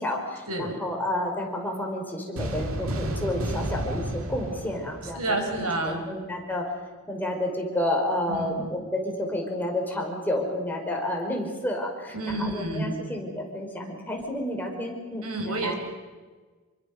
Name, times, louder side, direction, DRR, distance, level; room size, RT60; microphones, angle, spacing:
voice 1, 0.0-5.2 5.8-6.7 7.1-15.2 15.6-15.7, left 1 dB, 10° left, 0 dB, 5.4 m, -30 dB
sound 1, 2.4-5.8, equal, 65° right, 2.6 m, -32 dB
voice 2, 5.2-6.0 8.3-8.7 12.1-12.9 15.2-15.7, right 2 dB, 85° right, 5 dB, 5.7 m, -29 dB
28.0 x 24.0 x 6.9 m, 1.3 s
head